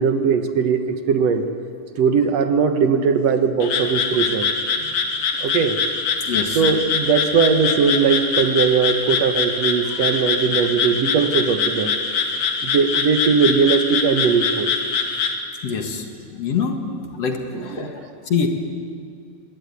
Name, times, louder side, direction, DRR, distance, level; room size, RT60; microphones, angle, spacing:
voice 1, 0.0-1.5 2.0-4.5 5.4-5.8 6.5-11.9 12.6-14.7 17.5-17.9, right 6 dB, 60° right, 7 dB, 2.0 m, -19 dB
Frog, 3.6-15.4, left 5 dB, 90° left, 3.5 m, -23 dB
voice 2, 6.3-6.6 9.9-10.0 15.6-16.1 16.3-16.8 17.2-18.5, left 6 dB, 55° left, 4 dB, 2.5 m, -25 dB
22.0 x 20.0 x 9.6 m, 2.4 s
omnidirectional pair, 3.9 m